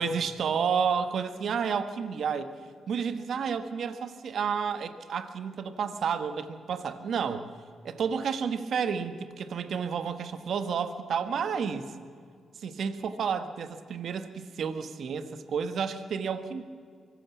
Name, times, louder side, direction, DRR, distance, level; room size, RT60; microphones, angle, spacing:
voice 1, 0.0-2.5 2.9-7.5 7.8-11.9 12.6-16.6, right 6 dB, 65° right, 11 dB, 1.4 m, -31 dB
24.5 x 16.5 x 7.2 m, 2.1 s
supercardioid pair, 55°, 0 cm